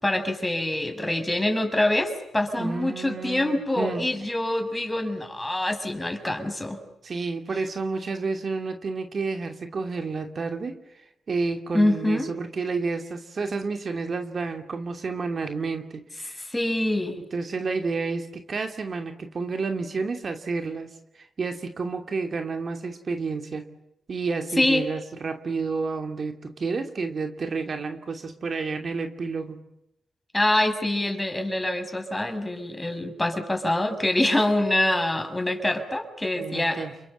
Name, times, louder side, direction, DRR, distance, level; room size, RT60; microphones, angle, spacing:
voice 1, 0.0-6.8 11.7-12.3 16.4-17.2 24.6-24.9 30.3-36.8, left 1 dB, 10° left, 6 dB, 6.5 m, -25 dB
voice 2, 2.6-4.0 7.0-16.4 17.3-23.7 24.1-29.6 36.4-36.9, right 4 dB, 50° right, 6 dB, 2.8 m, -30 dB
29.0 x 23.0 x 8.9 m, 0.82 s
cardioid pair, 70°, 0 cm